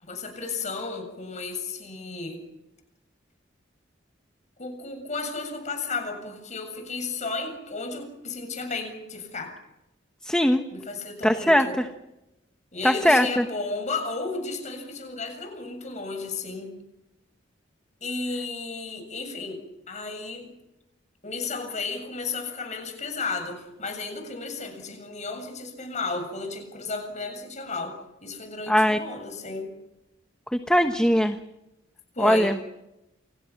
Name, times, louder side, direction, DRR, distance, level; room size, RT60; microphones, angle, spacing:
voice 1, 0.0-2.4 4.6-9.5 10.7-11.8 12.7-16.7 18.0-20.5 21.2-27.9 28.2-29.7 32.1-32.5, left 3 dB, 40° left, 6 dB, 7.5 m, -33 dB
voice 2, 10.2-10.6 11.2-11.7 12.8-13.4 28.7-29.0 30.5-31.4 32.2-32.6, equal, 5° left, 6 dB, 1.2 m, -20 dB
29.5 x 29.5 x 6.0 m, 0.91 s
head